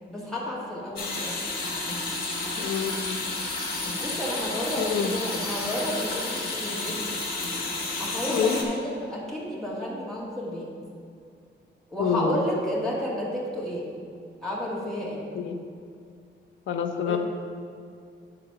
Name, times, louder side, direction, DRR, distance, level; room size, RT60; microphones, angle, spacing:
voice 1, 0.1-1.4 4.0-7.1 8.0-10.7 11.9-13.9 14.4-15.2 17.0-17.2, left 1 dB, ahead, -7 dB, 1.6 m, -31 dB
sound 1, 1.0-8.6, left 2 dB, 50° left, 1.4 m, -31 dB
voice 2, 2.6-3.2 4.8-5.2 8.3-8.6 12.0-12.4 15.3-15.6 16.7-17.2, left 6 dB, 85° left, 5 dB, 0.7 m, -27 dB
9.2 x 4.0 x 5.7 m, 2.3 s
wide cardioid pair, 175°, 19 cm